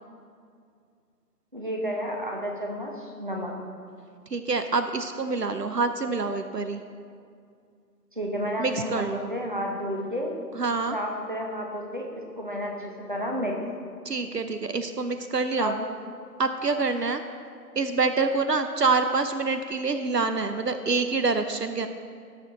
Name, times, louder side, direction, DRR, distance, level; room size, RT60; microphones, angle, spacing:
voice 1, 1.5-3.5 8.1-10.3 10.9-12.1 12.4-13.6 15.6-15.9, equal, 30° right, 0 dB, 1.0 m, -31 dB
voice 2, 4.3-6.8 8.6-9.3 10.5-11.0 14.0-15.7 16.4-17.2 17.8-21.9, right 4 dB, 70° right, 8 dB, 0.8 m, -26 dB
17.5 x 6.7 x 4.0 m, 2.3 s
figure-of-eight pair, 170°, 50 cm